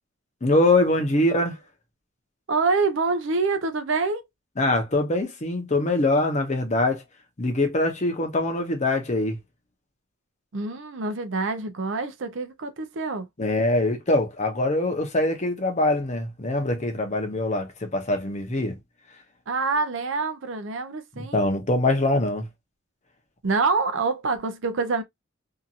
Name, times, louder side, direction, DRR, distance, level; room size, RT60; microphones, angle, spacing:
voice 1, 0.4-1.6 4.6-7.0 7.4-9.4 13.4-18.8 21.2-22.5, left 2 dB, 35° left, 0.7 m, -23 dB
voice 2, 2.5-4.2 10.5-13.3 19.5-21.5 23.4-25.0, right 4 dB, 65° right, 0.6 m, -26 dB
2.8 x 2.5 x 2.4 m
head